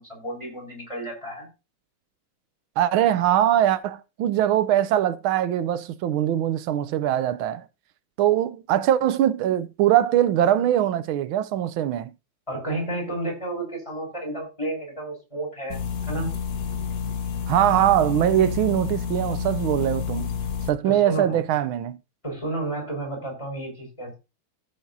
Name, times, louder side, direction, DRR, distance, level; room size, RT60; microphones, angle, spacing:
voice 1, 0.0-1.5 12.5-15.8 16.1-16.3 20.8-21.5 22.2-24.2, right 2 dB, 15° left, 5.1 m, -31 dB
voice 2, 2.8-7.6 8.2-12.1 17.5-20.3 20.7-22.0, right 11 dB, 75° right, 1.5 m, -22 dB
sound 1, 15.7-20.7, left 7 dB, 55° left, 1.4 m, -29 dB
15.0 x 7.3 x 2.7 m
omnidirectional pair, 2.3 m